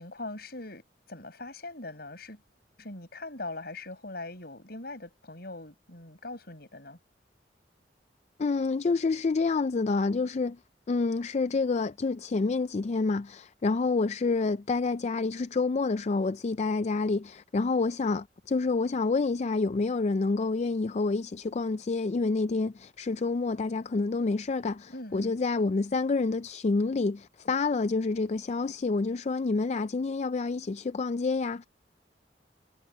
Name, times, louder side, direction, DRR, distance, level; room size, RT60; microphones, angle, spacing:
voice 1, 0.0-2.4 2.8-7.0 24.9-25.3, left 2 dB, 60° left, 7.6 m, -41 dB
voice 2, 8.4-10.6 10.9-31.7, left 3 dB, 40° left, 0.4 m, -28 dB
head